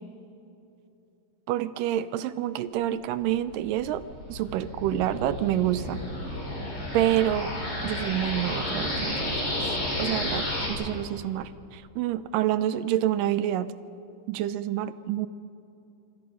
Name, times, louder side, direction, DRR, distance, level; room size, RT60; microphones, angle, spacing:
voice 1, 1.5-4.0 4.3-6.0 6.9-7.5 7.8-9.4 10.0-13.7 14.3-15.3, right 12 dB, 80° right, 14 dB, 2.2 m, -27 dB
sound 1, 3.4-10.7, left 1 dB, 30° left, 5.7 m, -32 dB
27.0 x 25.0 x 5.4 m, 2.8 s
omnidirectional pair, 4.1 m